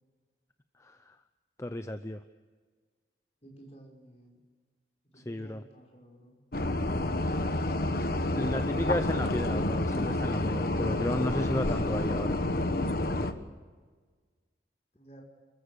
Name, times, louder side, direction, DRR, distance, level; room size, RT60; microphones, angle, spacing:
voice 1, 0.8-1.2 1.6-2.2 5.2-5.6 8.3-12.4, left 1 dB, 15° left, 9 dB, 0.6 m, -33 dB
voice 2, 3.4-4.4 5.1-6.4 11.8-12.0 15.0-15.2, right 1 dB, 35° left, -1 dB, 5.7 m, -53 dB
sound 1, 6.5-13.3, left 1 dB, 55° left, 1.3 m, -29 dB
28.5 x 15.0 x 6.6 m, 1.5 s
head